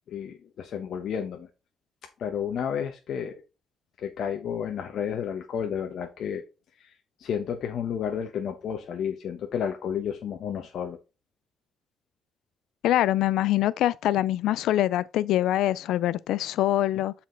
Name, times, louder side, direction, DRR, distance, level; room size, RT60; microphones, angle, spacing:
voice 1, 0.1-1.5 2.2-3.4 4.0-6.4 6.8-6.9 7.2-11.0, left 8 dB, 70° left, 1.0 m, -31 dB
voice 2, 12.8-17.1, left 13 dB, 85° left, 0.4 m, -24 dB
7.2 x 4.2 x 3.9 m
cardioid pair, 90°, 0 cm